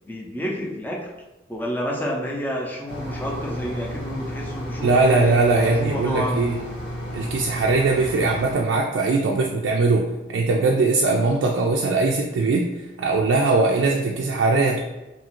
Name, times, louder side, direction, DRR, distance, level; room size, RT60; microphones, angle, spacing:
voice 1, 0.1-1.1 1.5-6.4, equal, 10° left, -1 dB, 0.4 m, -29 dB
sound 1, 2.9-8.5, equal, 65° left, 1.0 m, -33 dB
voice 2, 4.8-6.6 7.1-12.7 13.0-14.8, right 3 dB, 85° right, -1 dB, 0.3 m, -20 dB
2.8 x 2.4 x 2.9 m, 1.1 s
head